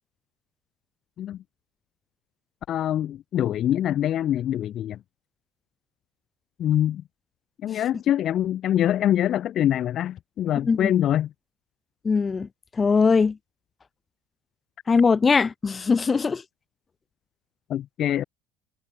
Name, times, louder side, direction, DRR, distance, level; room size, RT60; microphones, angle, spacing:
voice 1, 2.7-5.0 6.6-7.0 7.6-11.3 17.7-18.2, left 11 dB, 45° left, 6.8 m, -24 dB
voice 2, 10.6-11.0 12.0-13.4 14.9-16.4, left 5 dB, 20° left, 7.9 m, -21 dB
cardioid pair, 125°, 0 cm